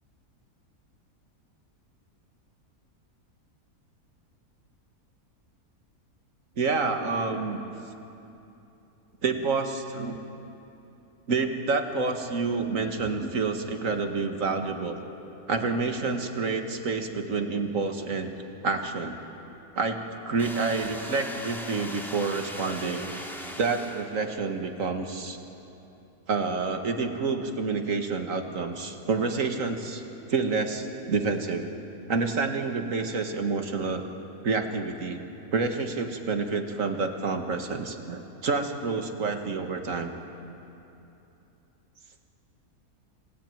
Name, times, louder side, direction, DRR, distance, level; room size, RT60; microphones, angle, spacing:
voice 1, 6.6-7.7 9.2-10.2 11.3-15.0 15.5-18.3 18.6-19.2 19.8-20.0 20.3-23.1 23.6-25.4 26.3-30.0 30.3-31.7 32.1-34.0 34.4-35.2 35.5-40.1, right 4 dB, 60° right, 5 dB, 2.0 m, -28 dB
sound 1, 20.4-24.4, equal, ahead, 2.0 m, -39 dB
27.5 x 17.0 x 9.1 m, 2.9 s
omnidirectional pair, 1.6 m